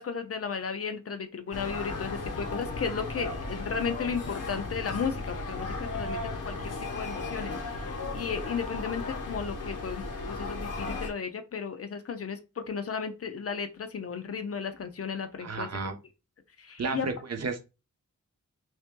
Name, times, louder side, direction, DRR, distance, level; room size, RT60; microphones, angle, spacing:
voice 1, 0.0-6.2 6.4-16.0 16.6-17.1, left 6 dB, 50° left, 8 dB, 0.6 m, -34 dB
sound 1, 1.5-11.1, left 3 dB, 85° left, 1.1 m, -35 dB
voice 2, 15.4-16.0 16.8-17.6, right 4 dB, 55° right, 6 dB, 0.7 m, -32 dB
3.4 x 2.7 x 3.6 m, 0.28 s
wide cardioid pair, 145°, 31 cm